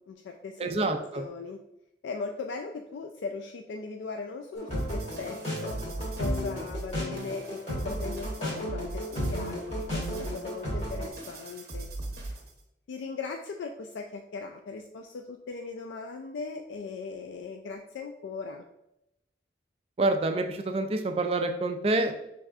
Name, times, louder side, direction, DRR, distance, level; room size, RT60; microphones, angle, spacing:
voice 1, 0.1-1.6 2.0-5.8 6.2-7.6 7.8-11.9 12.9-18.6, left 4 dB, 85° left, 4 dB, 0.3 m, -38 dB
voice 2, 0.6-1.2 20.0-22.1, right 2 dB, 30° right, 5 dB, 0.4 m, -27 dB
sound 1, 4.5-11.1, equal, 35° left, 1.4 m, -34 dB
sound 2, 4.7-12.6, right 2 dB, 55° right, 0.8 m, -39 dB
5.4 x 3.4 x 2.4 m, 0.86 s
head